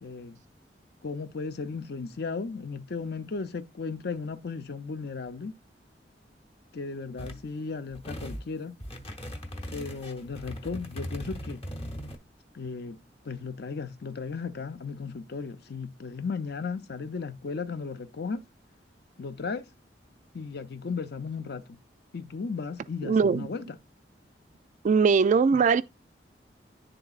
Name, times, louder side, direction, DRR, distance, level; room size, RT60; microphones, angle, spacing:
voice 1, 0.0-0.4 1.0-5.5 6.7-8.8 9.7-11.6 12.5-13.0 13.3-18.4 19.2-19.6 20.3-21.8 22.1-23.8, left 4 dB, 65° left, 0.6 m, -35 dB
sound 1, 7.2-7.4 7.9-8.5 8.8-12.2, equal, 35° left, 0.8 m, -39 dB
voice 2, 23.0-23.4 24.8-25.8, right 5 dB, 45° right, 0.3 m, -21 dB
10.5 x 3.8 x 2.4 m
head